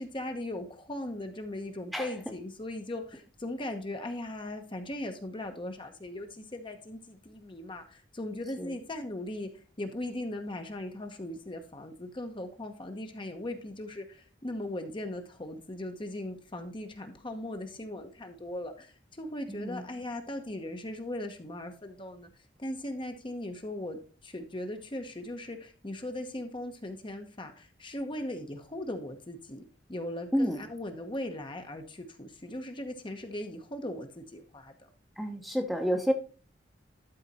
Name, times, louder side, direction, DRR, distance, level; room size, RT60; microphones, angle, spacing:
voice 1, 0.0-22.3 22.6-34.9, left 1 dB, 30° left, 6 dB, 1.0 m, -39 dB
voice 2, 19.5-19.9 30.3-30.6 35.2-36.1, equal, ahead, 4 dB, 0.9 m, -29 dB
12.5 x 4.2 x 4.2 m, 0.37 s
head